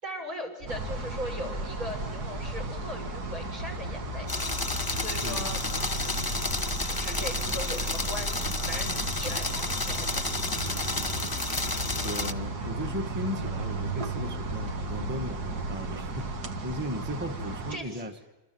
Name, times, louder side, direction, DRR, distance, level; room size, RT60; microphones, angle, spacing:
voice 1, 0.0-4.3 5.0-5.6 6.0-6.3 6.8-10.2 17.7-18.0, equal, 65° right, 5 dB, 7.3 m, -39 dB
sound 1, 0.6-16.4, right 1 dB, 40° right, 1.5 m, -38 dB
sound 2, 0.7-17.8, right 2 dB, 90° right, 2.4 m, -36 dB
sound 3, 4.3-12.3, left 3 dB, 15° left, 0.9 m, -31 dB
voice 2, 12.0-18.2, left 1 dB, 10° right, 6 dB, 1.2 m, -36 dB
28.5 x 27.0 x 7.6 m, 1.1 s
omnidirectional pair, 1.6 m